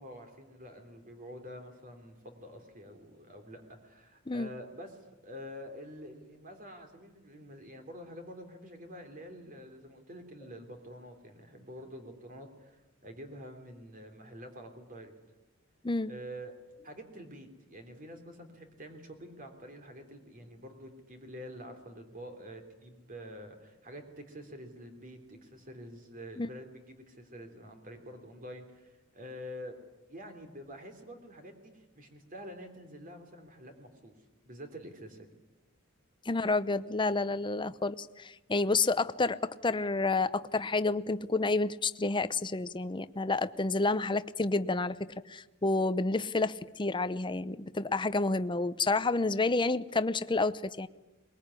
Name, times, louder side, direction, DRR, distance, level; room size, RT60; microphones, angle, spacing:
voice 1, 0.0-5.0 5.2-15.1 16.1-16.5 16.8-29.8 30.1-34.1 34.4-35.3, equal, 40° right, 5 dB, 3.3 m, -47 dB
voice 2, 36.3-45.0 45.3-50.9, left 3 dB, 25° left, 13 dB, 0.8 m, -29 dB
22.5 x 21.0 x 9.9 m, 1.1 s
head